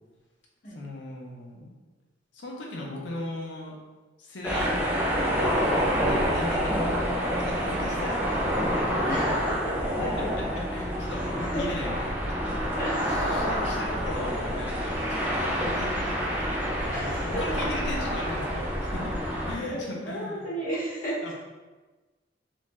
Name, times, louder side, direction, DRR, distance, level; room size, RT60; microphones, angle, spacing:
voice 1, 0.7-1.7 2.3-3.8 4.2-4.7 5.3-7.0 7.4-8.5 10.2-10.3 10.6-12.6 13.1-15.0 15.3-16.2 16.8-19.2 19.4-20.4 21.2-21.3, left 1 dB, 70° left, -2 dB, 0.6 m, -37 dB
sound 1, 4.4-19.6, equal, 10° right, 0.4 m, -27 dB
voice 2, 9.0-10.3 11.0-11.7 12.7-13.5 16.9-17.4 19.6-21.3, equal, 50° left, -7 dB, 1.1 m, -34 dB
3.1 x 2.5 x 2.2 m, 1.2 s
head